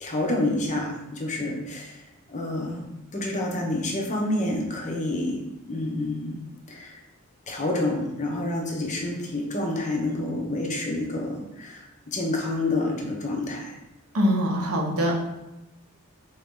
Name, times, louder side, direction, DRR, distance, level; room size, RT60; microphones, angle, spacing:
voice 1, 0.0-2.0 2.3-2.9 3.1-6.4 6.7-7.0 7.5-13.8, left 2 dB, 35° left, 0 dB, 0.7 m, -28 dB
voice 2, 14.1-15.1, equal, 75° right, 0 dB, 0.8 m, -23 dB
3.8 x 2.8 x 3.6 m, 0.96 s
head